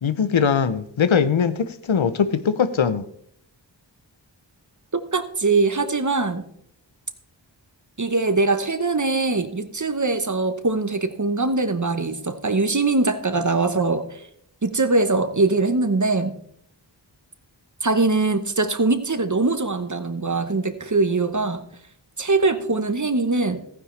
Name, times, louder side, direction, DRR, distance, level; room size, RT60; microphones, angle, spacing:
voice 1, 0.0-3.0, left 6 dB, 85° left, 0.7 m, -21 dB
voice 2, 4.9-6.5 8.0-14.2 14.6-16.3 17.8-21.7 22.2-23.6, right 3 dB, 40° right, 1.0 m, -22 dB
14.5 x 9.8 x 3.3 m
wide cardioid pair, 45°, 46 cm